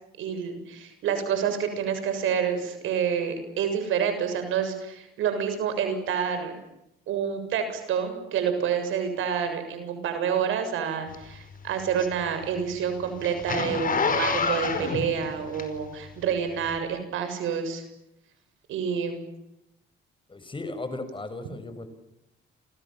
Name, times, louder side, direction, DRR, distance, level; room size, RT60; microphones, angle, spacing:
voice 1, 0.2-6.6 7.1-17.8 18.7-19.2, right 7 dB, 85° right, 8 dB, 7.2 m, -28 dB
Zipper (clothing), 11.1-16.1 16.6-16.8, left 5 dB, 45° left, 5.0 m, -28 dB
voice 2, 20.3-21.9, left 2 dB, 25° left, 11 dB, 5.6 m, -36 dB
29.5 x 27.0 x 7.4 m, 0.84 s
cardioid pair, 90°, 20 cm